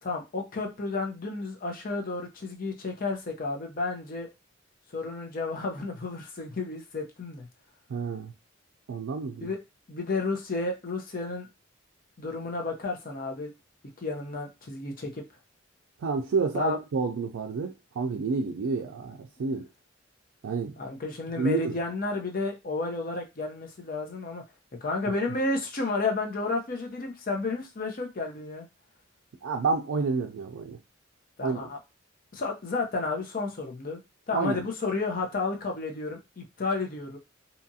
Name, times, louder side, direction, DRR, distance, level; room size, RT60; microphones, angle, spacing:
voice 1, 0.0-4.3 4.9-7.5 9.4-9.6 9.9-11.5 12.2-13.5 14.0-15.2 16.5-16.8 19.4-19.5 20.8-24.4 24.8-28.7 31.4-31.8 32.3-34.0 34.3-37.2, left 3 dB, 45° left, 2 dB, 0.6 m, -32 dB
voice 2, 7.9-8.3 8.9-9.5 16.0-19.7 20.4-20.7 21.4-21.8 29.4-30.8 31.4-31.6 34.3-34.6, right 4 dB, 75° right, 2 dB, 0.4 m, -29 dB
2.8 x 2.4 x 2.7 m, 0.25 s
head